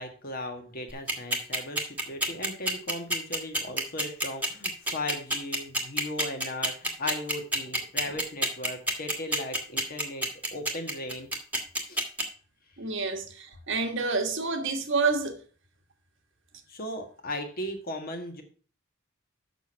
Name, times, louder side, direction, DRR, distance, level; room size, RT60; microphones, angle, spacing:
voice 1, 0.0-11.3 11.9-12.0 16.7-18.4, left 1 dB, 45° left, 1.6 m, -37 dB
sound 1, 0.9-12.2, right 1 dB, 10° right, 1.5 m, -27 dB
voice 2, 12.8-15.4, right 4 dB, 60° right, 1.4 m, -28 dB
7.1 x 6.2 x 5.5 m
head